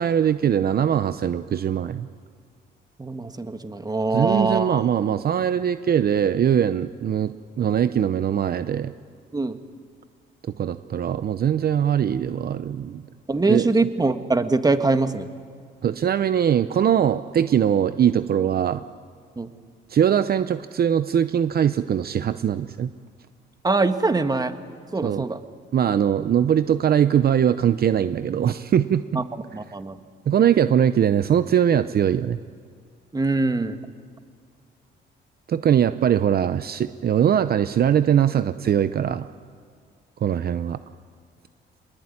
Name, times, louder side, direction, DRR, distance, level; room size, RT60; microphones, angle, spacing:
voice 1, 0.0-2.1 4.1-8.9 10.6-13.0 13.5-13.7 15.8-18.8 19.9-22.9 25.0-25.3 25.7-29.2 30.3-32.4 35.5-39.3 40.2-40.8, right 9 dB, 50° right, 12 dB, 0.7 m, -21 dB
voice 2, 3.0-4.8 9.3-9.6 13.3-15.3 19.4-19.5 23.6-24.5 24.9-25.4 29.1-29.2 29.5-30.0 33.1-33.8, right 3 dB, 20° right, 9 dB, 1.5 m, -23 dB
24.0 x 20.0 x 9.8 m, 2.1 s
cardioid pair, 90°, 20 cm